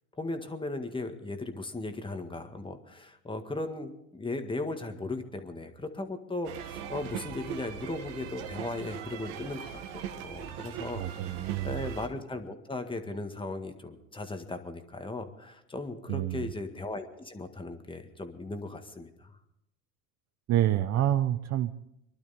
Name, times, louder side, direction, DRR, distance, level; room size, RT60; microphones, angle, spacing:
voice 1, 0.2-11.0 11.3-19.4, left 2 dB, 10° left, 7 dB, 1.7 m, -37 dB
sound 1, 6.4-12.1, right 9 dB, 65° right, 1.8 m, -40 dB
voice 2, 11.0-11.8 16.1-16.5 20.5-21.8, right 12 dB, 40° right, 11 dB, 0.7 m, -28 dB
23.5 x 12.0 x 4.2 m, 0.80 s
hypercardioid pair, 90°, 40 cm